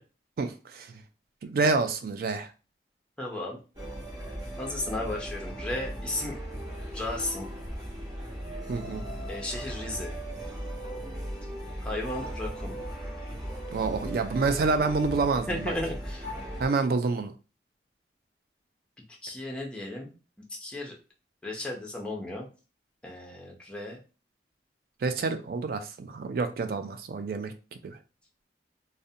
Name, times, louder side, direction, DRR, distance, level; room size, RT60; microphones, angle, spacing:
voice 1, 0.4-0.9 1.4-2.5 8.7-9.0 13.7-15.7 16.6-17.3 25.0-27.5 27.8-28.0, right 4 dB, 50° right, 8 dB, 0.3 m, -28 dB
voice 2, 3.2-3.6 4.6-6.4 6.9-7.5 9.3-10.2 11.8-12.8 15.5-16.3 19.2-20.1 20.5-21.0 21.4-22.5 23.0-24.0, left 1 dB, 5° left, -2 dB, 0.5 m, -34 dB
sound 1, 3.8-16.7, equal, 20° right, 0.8 m, -37 dB
2.5 x 2.1 x 2.6 m, 0.33 s
head